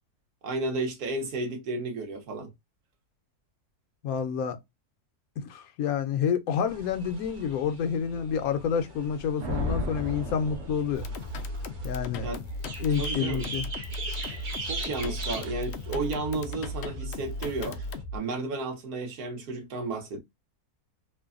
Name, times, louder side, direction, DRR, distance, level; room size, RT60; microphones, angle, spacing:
voice 1, 0.4-2.5 12.2-12.4 13.0-13.5 14.6-17.8 18.1-20.2, right 3 dB, 70° right, 1.4 m, -32 dB
voice 2, 4.0-4.6 5.4-11.0 11.8-12.3 12.8-13.7, left 7 dB, 70° left, 1.0 m, -28 dB
sound 1, 6.7-18.0, right 2 dB, 45° right, 0.7 m, -41 dB
Thunder, 9.4-11.6, left 1 dB, 90° right, 1.3 m, -33 dB
sound 2, 10.9-18.2, left 1 dB, 90° left, 0.5 m, -36 dB
3.2 x 2.1 x 2.3 m
omnidirectional pair, 1.7 m